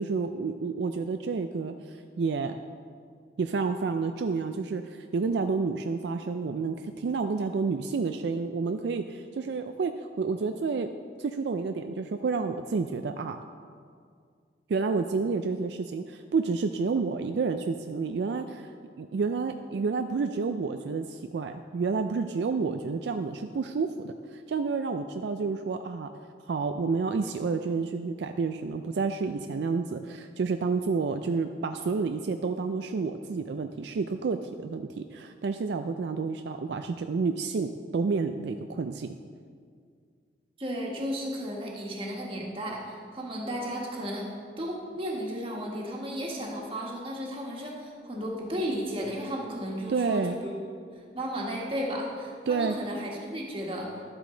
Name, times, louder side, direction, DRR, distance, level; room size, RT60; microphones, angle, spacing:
voice 1, 0.0-2.5 3.4-10.9 11.2-13.4 14.7-18.7 19.0-26.1 26.5-39.1 49.9-50.4 52.5-52.8, right 4 dB, 70° right, 7 dB, 0.4 m, -30 dB
voice 2, 40.6-44.3 44.6-50.7 51.1-53.9, equal, 30° right, -2 dB, 1.6 m, -34 dB
11.5 x 8.1 x 3.9 m, 2.1 s
head